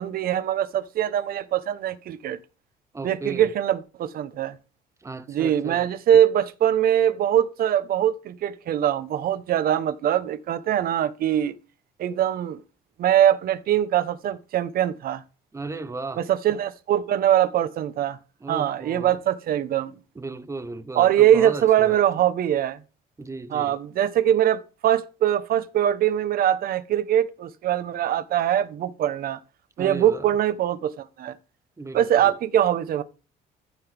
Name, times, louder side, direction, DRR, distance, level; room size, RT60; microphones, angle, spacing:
voice 1, 0.0-2.4 3.0-4.6 5.3-11.5 12.0-12.6 13.0-15.2 16.2-18.2 18.5-19.9 20.9-22.8 23.5-29.4 29.8-31.3 31.9-33.0, right 11 dB, 60° right, 1.1 m, -22 dB
voice 2, 2.9-3.5 5.0-6.2 15.5-16.2 18.4-19.2 20.1-22.0 23.2-23.8 29.8-30.3 31.8-32.4, right 3 dB, 15° right, 1.2 m, -35 dB
14.5 x 6.0 x 3.5 m
cardioid pair, 110°, 17 cm